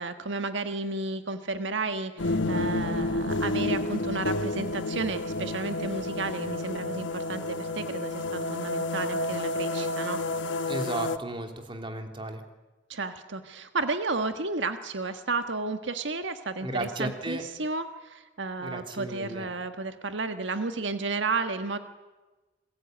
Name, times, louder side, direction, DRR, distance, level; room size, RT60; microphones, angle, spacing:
voice 1, 0.0-10.2 12.9-21.8, right 3 dB, 75° right, 8 dB, 1.5 m, -32 dB
sound 1, 2.2-11.2, left 2 dB, 80° left, 1.2 m, -30 dB
voice 2, 10.7-12.4 16.6-17.4 18.6-19.5, right 1 dB, 25° right, 5 dB, 3.1 m, -34 dB
27.0 x 21.0 x 9.3 m, 1.2 s
head